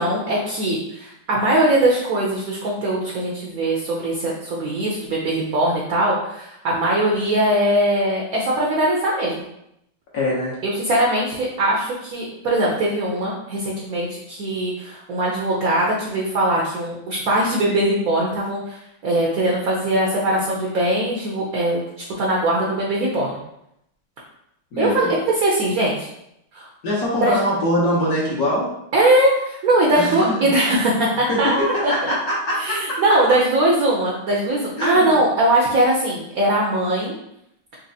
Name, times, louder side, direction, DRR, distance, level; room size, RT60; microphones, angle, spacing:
voice 1, 0.0-9.3 10.6-18.8 19.0-21.8 22.2-23.3 24.8-26.0 26.5-26.7 27.2-27.4 28.9-31.7 32.0-32.1 32.6-37.1, right 1 dB, 65° right, -3 dB, 0.9 m, -20 dB
voice 2, 10.1-10.5 24.7-25.2 26.8-28.7 29.9-30.5 31.3-31.4 32.1-32.8 34.8-35.1, equal, 55° left, -6 dB, 1.2 m, -23 dB
4.2 x 2.9 x 2.7 m, 0.79 s
omnidirectional pair, 2.2 m